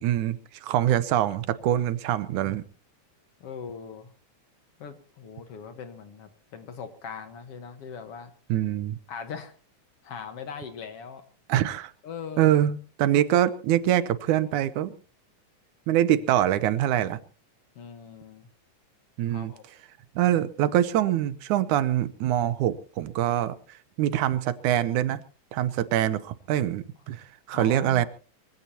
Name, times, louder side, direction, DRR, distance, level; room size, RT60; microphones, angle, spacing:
voice 1, 0.0-2.6 8.5-9.0 11.5-11.9 12.4-15.0 15.9-17.2 19.2-19.5 20.2-23.6 24.0-25.2 25.5-28.1, right 12 dB, 80° right, 15 dB, 2.3 m, -24 dB
voice 2, 3.4-4.1 4.8-8.3 9.1-9.5 10.0-11.2 12.0-12.5 17.8-18.5 19.3-19.6 27.5-28.1, left 6 dB, 55° left, 9 dB, 2.1 m, -40 dB
24.5 x 16.0 x 2.9 m, 0.37 s
omnidirectional pair, 3.5 m